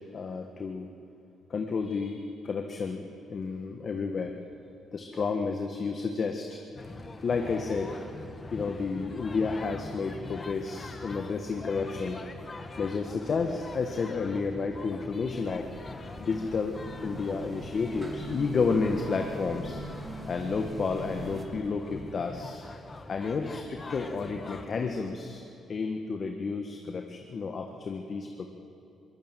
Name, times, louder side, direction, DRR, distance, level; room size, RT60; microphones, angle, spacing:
voice 1, 0.1-0.9 1.5-3.0 3.3-4.3 4.9-6.6 7.2-7.9 8.5-12.2 12.8-15.7 16.2-19.8 20.3-22.6 23.1-25.4 25.7-28.5, left 4 dB, 45° left, 4 dB, 1.6 m, -31 dB
sound 1, 6.8-24.7, left 3 dB, 30° left, 1.8 m, -43 dB
sound 2, 15.4-21.4, right 2 dB, 25° right, 3.3 m, -42 dB
22.5 x 18.0 x 9.2 m, 2.8 s
cardioid pair, 90°, 0 cm